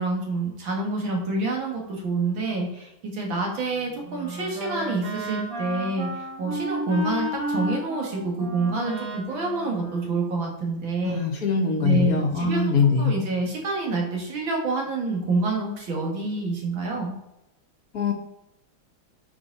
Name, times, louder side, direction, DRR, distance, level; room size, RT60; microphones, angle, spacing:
voice 1, 0.0-11.2 11.8-12.6 13.0-17.1, right 3 dB, 75° right, -1 dB, 2.7 m, -27 dB
Wind instrument woodwind instrument, 3.6-10.7, right 1 dB, 30° right, 1.5 m, -33 dB
voice 2, 11.0-13.1 17.9-18.1, left 4 dB, 55° left, 2 dB, 1.3 m, -22 dB
8.8 x 4.7 x 4.1 m, 0.89 s
omnidirectional pair, 2.2 m